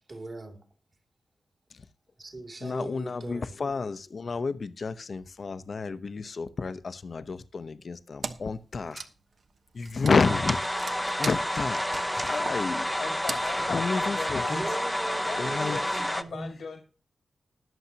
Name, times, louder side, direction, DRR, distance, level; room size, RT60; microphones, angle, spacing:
voice 1, 0.1-0.6 2.2-3.5 14.5-16.6, right 2 dB, 40° right, 2.6 m, -39 dB
voice 2, 2.6-9.1 9.8-10.6 11.2-12.9 13.7-14.6 15.4-16.0, left 4 dB, 55° left, 0.8 m, -30 dB
Wood, 8.2-8.6 8.8-14.4, right 4 dB, 60° right, 1.0 m, -39 dB
sound 1, 10.2-16.2, equal, 5° left, 0.7 m, -29 dB
voice 3, 13.0-14.8 15.2-16.8, left 5 dB, 85° left, 1.8 m, -38 dB
20.0 x 7.2 x 2.9 m
wide cardioid pair, 105°, 0 cm